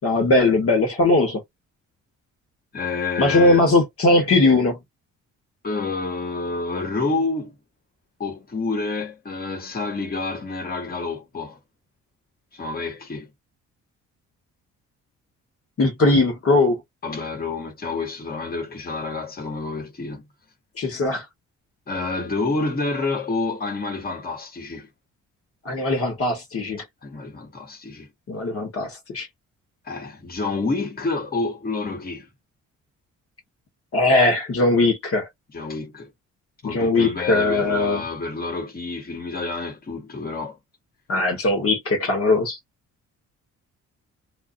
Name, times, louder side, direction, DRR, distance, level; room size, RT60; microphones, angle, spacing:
voice 1, 0.0-1.4 3.2-4.8 15.8-16.8 20.8-21.2 25.6-26.8 28.3-29.3 33.9-35.3 36.6-38.0 41.1-42.6, left 2 dB, 50° left, 1.2 m, -19 dB
voice 2, 2.7-3.6 5.6-7.6 8.2-11.6 12.5-13.3 17.0-20.2 21.9-24.9 27.0-28.1 29.8-32.3 35.5-36.1 36.6-40.6, left 3 dB, 30° left, 1.3 m, -28 dB
2.4 x 2.4 x 2.5 m
cardioid pair, 90°, 30 cm